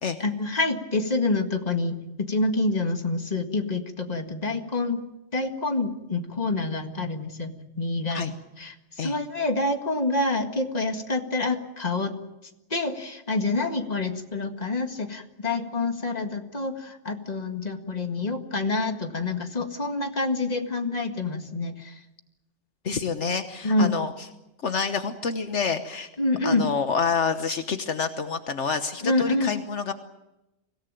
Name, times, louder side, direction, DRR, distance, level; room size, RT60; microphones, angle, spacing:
voice 1, 0.2-5.0 5.3-8.3 8.6-8.7 9.0-12.1 12.7-21.9 23.6-23.9 26.2-26.7 29.0-29.5, left 2 dB, 35° left, 5 dB, 2.0 m, -27 dB
voice 2, 22.8-24.3 24.6-26.1 26.4-29.9, left 5 dB, 70° left, 8 dB, 1.4 m, -28 dB
25.0 x 17.5 x 9.0 m, 0.96 s
omnidirectional pair, 1.2 m